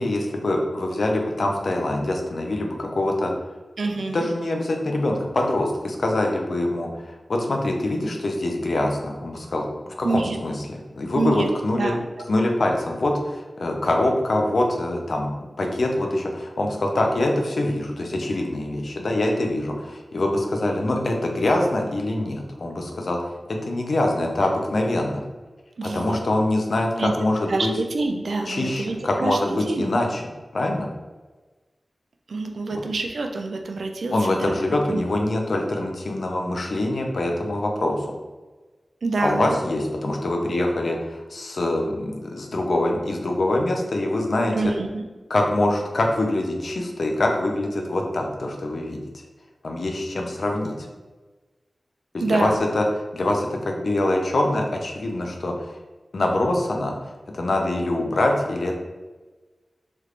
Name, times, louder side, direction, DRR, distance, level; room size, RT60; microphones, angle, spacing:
voice 1, 0.0-3.3 4.1-11.9 12.3-15.3 15.6-25.2 25.8-27.7 28.5-30.2 30.5-30.9 32.7-32.8 34.1-38.1 39.2-44.5 45.3-49.0 49.6-50.7 52.1-52.8 53.1-55.7 56.1-56.9 57.3-58.8, left 1 dB, 70° left, 2 dB, 0.5 m, -24 dB
voice 2, 3.8-4.2 10.0-10.4 11.1-11.5 11.8-12.3 25.8-26.2 27.0-27.1 27.5-29.4 29.7-29.9 32.3-34.5 34.9-35.0 39.0-39.6 44.5-45.0 52.2-52.6, right 3 dB, 90° right, 3 dB, 0.4 m, -26 dB
3.2 x 2.4 x 3.2 m, 1.3 s
wide cardioid pair, 70°, 0 cm